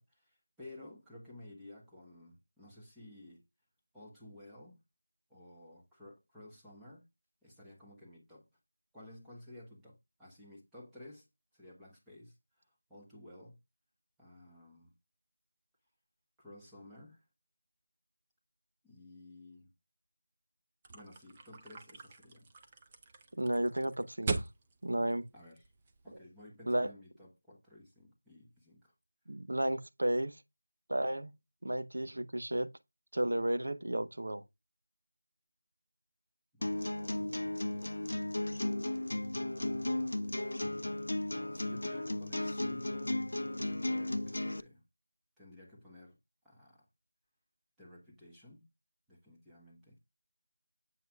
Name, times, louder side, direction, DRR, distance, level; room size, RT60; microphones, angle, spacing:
voice 1, 0.0-3.4 3.9-4.8 5.3-7.1 7.4-8.5 8.9-11.3 11.5-13.6 14.2-14.9 16.4-17.2 18.8-19.7 20.9-22.5 25.3-25.6 26.0-28.9 36.5-38.7 39.2-39.3 39.6-40.5 41.1-43.2 43.5-44.8 45.4-46.2 46.4-46.8 47.8-48.7 49.1-50.0, left 1 dB, 5° right, 1.2 m, -54 dB
sound 1, 20.8-26.2, right 3 dB, 20° right, 0.5 m, -41 dB
voice 2, 23.4-24.5 24.8-25.3 26.7-26.9 29.3-30.4 30.9-31.3 31.6-32.7 33.1-34.4, right 1 dB, 75° right, 0.8 m, -33 dB
sound 2, 36.6-44.6, left 1 dB, 75° left, 0.5 m, -35 dB
7.5 x 5.5 x 2.4 m
figure-of-eight pair, 175°, 0 cm